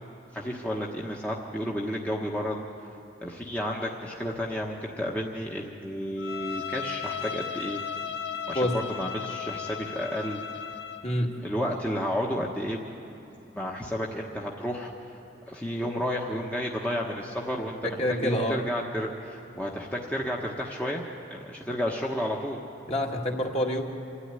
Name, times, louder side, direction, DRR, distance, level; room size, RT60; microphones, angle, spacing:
voice 1, 0.3-2.6 3.2-7.8 8.5-10.4 11.4-12.8 13.5-14.9 15.5-21.0 21.3-22.6, equal, 10° left, -2 dB, 1.2 m, -31 dB
Bowed string instrument, 6.2-11.1, left 7 dB, 80° left, 1.5 m, -35 dB
voice 2, 17.8-18.6 22.9-23.9, equal, 35° left, 0 dB, 2.0 m, -27 dB
26.5 x 13.0 x 9.8 m, 3.0 s
head